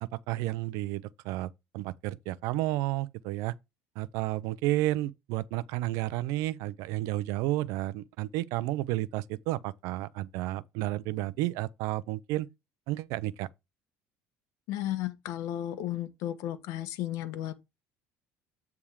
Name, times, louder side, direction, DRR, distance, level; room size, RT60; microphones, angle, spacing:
voice 1, 0.0-3.6 4.0-12.5 12.9-13.5, right 16 dB, 75° right, 0.6 m, -32 dB
voice 2, 14.7-17.6, left 13 dB, 75° left, 1.2 m, -34 dB
8.6 x 3.6 x 4.8 m
cardioid pair, 120°, 6 cm